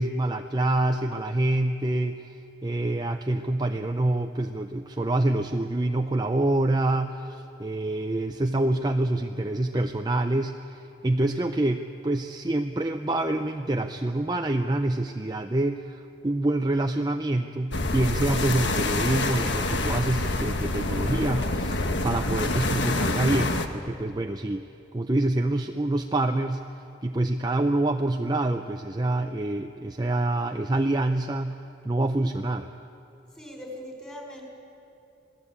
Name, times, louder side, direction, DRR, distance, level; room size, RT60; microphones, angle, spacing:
voice 1, 0.0-2.4 2.6-24.7 24.9-26.6 27.0-31.6 31.8-32.7, right 2 dB, 20° right, 5 dB, 0.6 m, -26 dB
sound 1, 17.7-23.7, left 2 dB, 70° left, 1.5 m, -27 dB
voice 2, 33.3-34.4, left 1 dB, 5° left, 0 dB, 4.5 m, -40 dB
27.0 x 18.5 x 8.5 m, 2.8 s
head